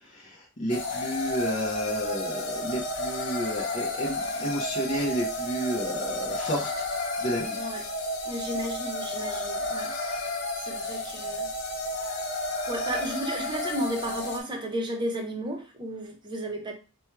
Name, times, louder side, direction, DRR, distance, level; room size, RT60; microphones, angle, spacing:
voice 1, 0.0-6.9 7.2-7.6, equal, 35° left, -4 dB, 0.7 m, -31 dB
sound 1, 0.7-14.4, left 1 dB, 55° left, 1.2 m, -32 dB
voice 2, 8.2-10.3 10.6-11.5 12.7-16.7, right 1 dB, 20° right, 2 dB, 0.9 m, -33 dB
4.3 x 2.3 x 4.5 m, 0.32 s
head